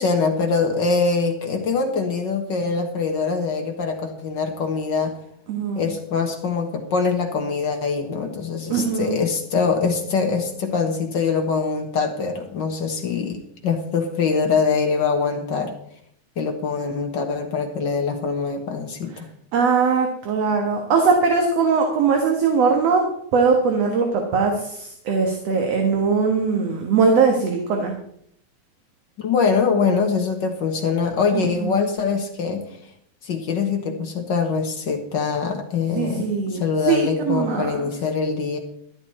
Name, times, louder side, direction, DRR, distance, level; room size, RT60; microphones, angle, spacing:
voice 1, 0.0-5.1 5.8-15.7 16.4-19.3 29.2-32.7 33.2-38.6, left 5 dB, 50° left, 3 dB, 1.6 m, -23 dB
voice 2, 5.5-5.9 8.7-9.2 19.5-23.0 23.3-27.9 31.3-31.8 36.0-37.8, right 5 dB, 60° right, 2 dB, 2.4 m, -20 dB
12.0 x 12.0 x 4.3 m, 0.69 s
omnidirectional pair, 3.3 m